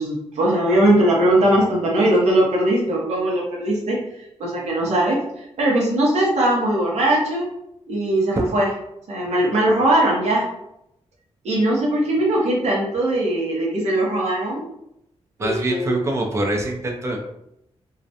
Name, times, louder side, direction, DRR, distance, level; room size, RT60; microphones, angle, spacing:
voice 1, 0.0-4.0 4.4-7.4 7.9-8.7 9.1-10.5 11.4-14.6 15.4-16.0, right 1 dB, 70° right, -3 dB, 0.8 m, -20 dB
voice 2, 15.4-17.2, right 1 dB, 25° right, 1 dB, 0.4 m, -24 dB
2.4 x 2.1 x 2.7 m, 0.80 s
wide cardioid pair, 180°, 12 cm